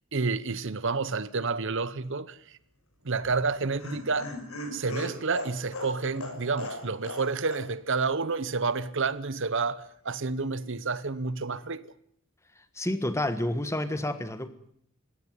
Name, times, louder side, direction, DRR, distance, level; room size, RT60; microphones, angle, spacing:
voice 1, 0.1-2.6 3.0-4.3 4.7-11.9, right 4 dB, 60° right, 0.9 m, -29 dB
Laughter, 3.2-7.2 7.5-7.6 7.9-8.0, left 1 dB, 85° left, 6.4 m, -38 dB
voice 2, 12.7-14.5, left 1 dB, 15° left, 1.5 m, -29 dB
21.5 x 17.0 x 9.7 m
head